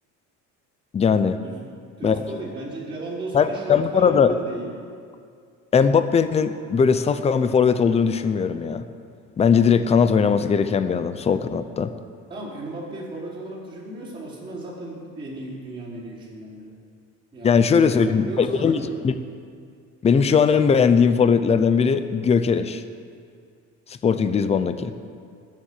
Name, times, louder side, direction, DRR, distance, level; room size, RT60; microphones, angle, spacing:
voice 1, 0.9-1.4 2.0-2.2 3.3-4.3 5.7-8.8 9.4-11.9 17.4-19.1 20.0-22.8 23.9-24.9, left 6 dB, 20° left, 11 dB, 0.6 m, -19 dB
voice 2, 2.0-4.8 12.3-16.7 17.3-19.0, right 2 dB, 15° right, -9 dB, 4.5 m, -35 dB
19.5 x 7.5 x 8.8 m, 2.2 s
cardioid pair, 165°, 32 cm